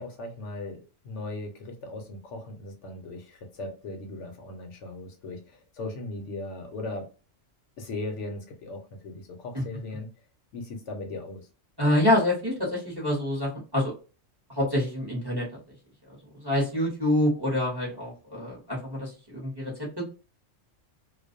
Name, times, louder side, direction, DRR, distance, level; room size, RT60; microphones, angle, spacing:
voice 1, 0.0-7.1 7.8-10.1 10.5-11.5, left 2 dB, 70° left, 0.9 m, -38 dB
voice 2, 11.8-13.9 14.6-15.5 16.3-20.1, left 1 dB, 20° right, 0.8 m, -26 dB
2.4 x 2.1 x 2.5 m
omnidirectional pair, 1.3 m